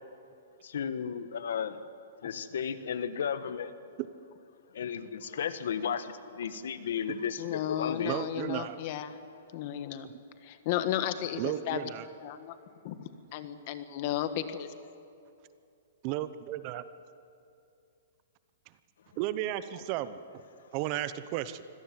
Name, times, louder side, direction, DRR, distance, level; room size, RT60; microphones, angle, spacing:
voice 1, 0.6-1.8 2.2-3.7 4.7-8.2, left 7 dB, 75° left, 12 dB, 1.3 m, -34 dB
voice 2, 7.4-9.2 9.5-10.1 10.4-11.8 12.2-12.6 12.8-14.7, left 11 dB, 40° left, 10 dB, 1.4 m, -34 dB
voice 3, 8.0-8.8 10.0-10.1 11.4-12.1 16.0-16.8 19.2-20.4 20.7-21.6, right 13 dB, 35° right, 13 dB, 0.9 m, -34 dB
25.0 x 17.5 x 7.7 m, 2.6 s
hypercardioid pair, 160°, 0 cm